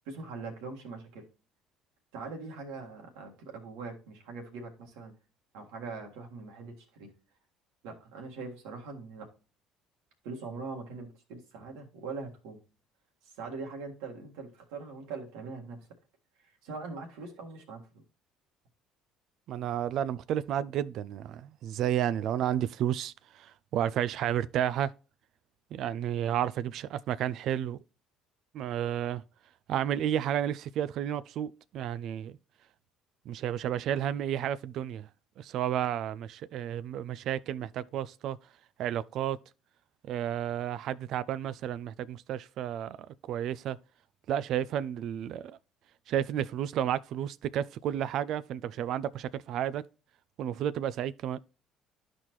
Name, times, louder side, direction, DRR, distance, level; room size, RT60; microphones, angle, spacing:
voice 1, 0.0-1.2 2.1-5.1 5.5-7.1 7.8-9.3 10.2-12.6 13.2-15.8 16.4-18.0, right 4 dB, 80° right, 1.7 m, -42 dB
voice 2, 19.5-24.9 25.7-27.8 28.5-29.2 29.7-32.4 33.3-35.1 35.4-38.4 38.8-39.4 40.0-43.8 44.3-45.6 46.1-49.8 50.4-51.4, right 10 dB, 65° right, 0.3 m, -32 dB
12.0 x 4.2 x 3.0 m
hypercardioid pair, 65°, 0 cm